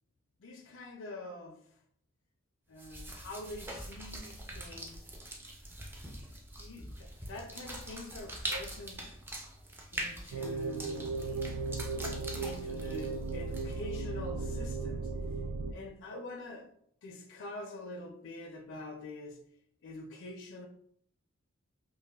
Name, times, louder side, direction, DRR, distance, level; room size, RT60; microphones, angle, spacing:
voice 1, 0.4-1.6 2.7-5.1 6.6-9.2 9.9-11.1 12.4-15.1 15.7-16.7 17.0-19.4 19.8-20.7, left 2 dB, 65° left, 0.5 m, -45 dB
sound 1, 2.8-14.0, right 1 dB, 10° right, 0.4 m, -43 dB
sound 2, 10.3-15.7, right 3 dB, 85° right, 0.3 m, -36 dB
5.2 x 2.1 x 2.3 m
head